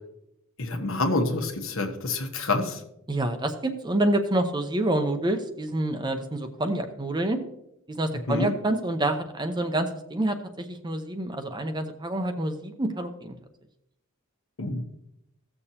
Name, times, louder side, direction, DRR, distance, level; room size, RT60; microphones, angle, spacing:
voice 1, 0.6-2.8 8.3-8.5 14.6-14.8, left 2 dB, 65° left, 4 dB, 1.2 m, -27 dB
voice 2, 3.1-7.4 7.9-13.4, right 1 dB, 20° right, 6 dB, 0.7 m, -27 dB
16.0 x 6.8 x 2.8 m, 0.82 s
head